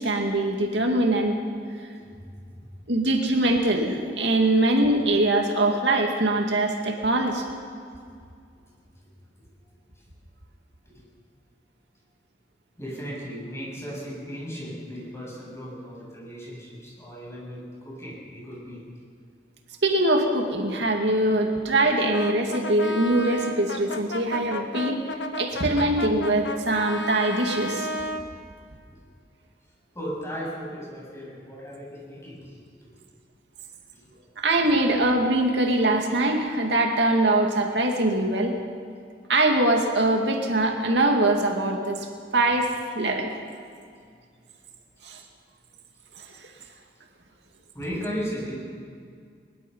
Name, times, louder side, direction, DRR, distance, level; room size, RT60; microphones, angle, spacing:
voice 1, 0.0-1.4 2.9-7.4 19.8-25.0 25.4-27.9 34.4-38.6 39.3-42.1 42.3-42.7 43.0-43.3 45.0-45.2 46.2-46.3, right 1 dB, 80° right, 2 dB, 2.4 m, -22 dB
voice 2, 1.9-2.6 9.9-10.0 10.9-11.0 12.8-18.8 28.9-29.0 29.9-32.6 33.9-34.1 47.7-48.5, equal, 15° left, -5 dB, 7.9 m, -36 dB
Brass instrument, 22.1-28.3, left 1 dB, 85° left, 1.4 m, -33 dB
22.5 x 21.0 x 5.6 m, 2.2 s
head